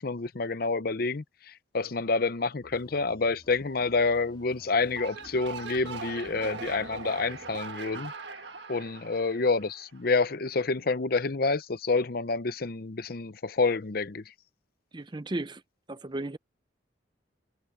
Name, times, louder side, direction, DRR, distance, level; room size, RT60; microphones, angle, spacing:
voice 1, 0.0-8.1 8.7-14.3, left 3 dB, 50° left, 0.7 m, -28 dB
sound 1, 2.6-7.6, equal, 25° left, 2.5 m, -55 dB
sound 2, 4.8-10.2, right 4 dB, 60° right, 1.6 m, -41 dB
voice 2, 14.9-15.6 15.9-16.4, right 2 dB, 25° right, 0.6 m, -34 dB
head